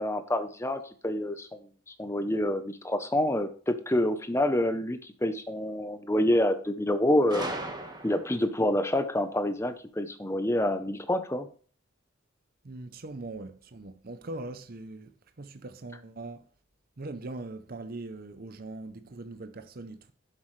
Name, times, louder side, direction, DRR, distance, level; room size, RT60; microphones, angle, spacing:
voice 1, 0.0-1.5 1.9-7.5 8.0-11.5, left 1 dB, 15° left, 0.7 m, -27 dB
Gunshot gunfire, 7.3-8.5, right 2 dB, 20° right, 1.4 m, -36 dB
voice 2, 12.6-15.1 15.4-16.4 17.0-20.1, right 2 dB, 45° right, 0.6 m, -41 dB
11.0 x 7.5 x 3.2 m
head